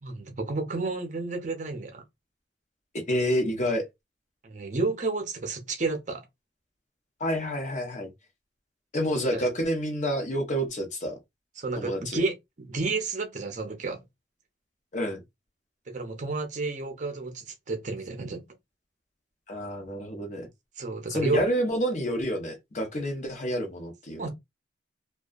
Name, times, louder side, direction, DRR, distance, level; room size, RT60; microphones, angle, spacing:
voice 1, 0.0-2.0 4.4-6.2 9.3-9.5 11.6-14.0 15.9-18.4 20.8-21.5 24.2-24.3, right 3 dB, 40° right, 0.7 m, -31 dB
voice 2, 2.9-3.8 7.2-8.1 8.9-11.2 11.8-12.2 14.9-15.2 19.5-20.5 21.1-24.2, equal, 40° left, 0.8 m, -28 dB
2.7 x 2.3 x 2.4 m
head